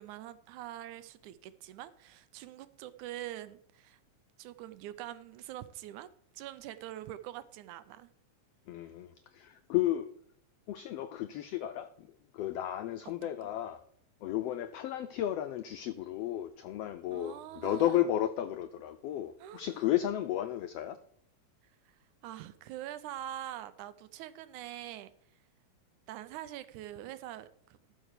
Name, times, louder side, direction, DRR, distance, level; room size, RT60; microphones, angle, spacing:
voice 1, 0.0-4.0 4.4-6.1 6.3-8.1 17.1-18.0 19.4-19.7 22.2-25.1 26.1-27.8, right 13 dB, 85° right, 2.1 m, -44 dB
voice 2, 8.7-10.1 10.7-12.1 12.3-13.8 14.2-21.0, left 12 dB, 90° left, 1.4 m, -33 dB
13.0 x 4.6 x 6.6 m
omnidirectional pair, 3.4 m